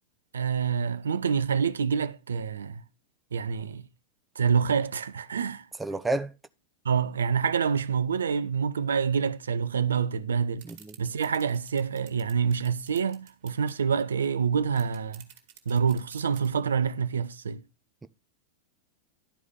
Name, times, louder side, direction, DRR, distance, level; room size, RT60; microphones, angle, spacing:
voice 1, 0.3-2.8 3.3-3.8 4.4-5.7 6.8-10.6 11.0-15.2 15.7-17.6, right 6 dB, 70° right, 0.5 m, -27 dB
voice 2, 5.8-6.3 10.6-11.0, right 2 dB, 10° right, 0.7 m, -30 dB
sound 1, 10.6-13.8 14.2-14.3 14.5-16.5, right 10 dB, 45° right, 1.8 m, -51 dB
11.5 x 4.7 x 5.5 m
figure-of-eight pair, 90°, 0 cm